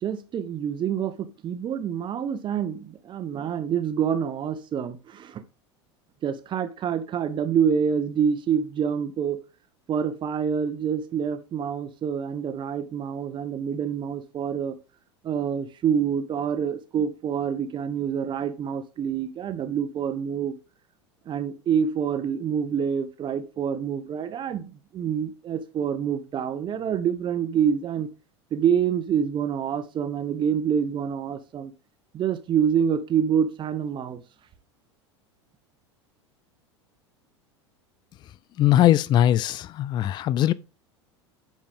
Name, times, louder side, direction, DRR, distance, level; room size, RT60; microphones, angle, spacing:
voice 1, 0.0-5.4 6.2-9.4 9.9-14.8 15.2-20.5 21.3-28.1 28.5-31.7 32.1-34.2, right 8 dB, 35° right, 1.1 m, -27 dB
voice 2, 38.6-40.5, left 12 dB, 30° left, 0.4 m, -20 dB
8.9 x 5.4 x 3.6 m
figure-of-eight pair, 80°, 15 cm